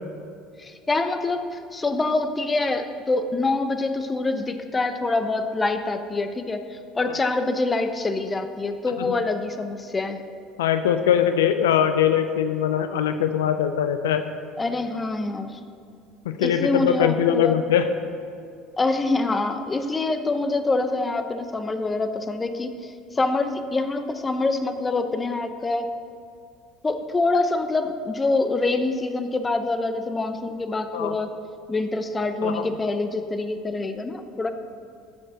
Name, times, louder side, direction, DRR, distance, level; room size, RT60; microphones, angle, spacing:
voice 1, 0.6-10.2 14.6-15.6 16.4-17.6 18.8-25.9 26.8-31.4 31.7-34.5, left 3 dB, 25° left, 8 dB, 0.9 m, -25 dB
voice 2, 10.6-14.2 16.3-17.9 30.9-31.1 32.4-32.6, left 9 dB, 80° left, 9 dB, 0.4 m, -21 dB
10.5 x 6.8 x 6.3 m, 2.3 s
hypercardioid pair, 70°, 0 cm